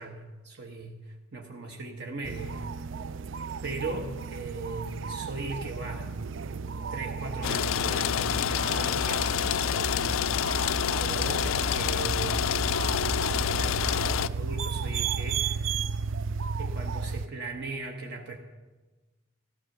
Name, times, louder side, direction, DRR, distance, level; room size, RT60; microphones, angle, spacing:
voice 1, 0.0-2.9 3.6-6.1 6.9-10.4 11.0-12.5 12.9-15.8 16.6-18.4, right 3 dB, 55° right, 2 dB, 1.2 m, -38 dB
sound 1, 2.2-17.3, right 5 dB, 70° right, 0.4 m, -34 dB
sound 2, 7.4-14.3, left 8 dB, 80° left, 0.4 m, -27 dB
15.0 x 12.5 x 6.6 m, 1.2 s
head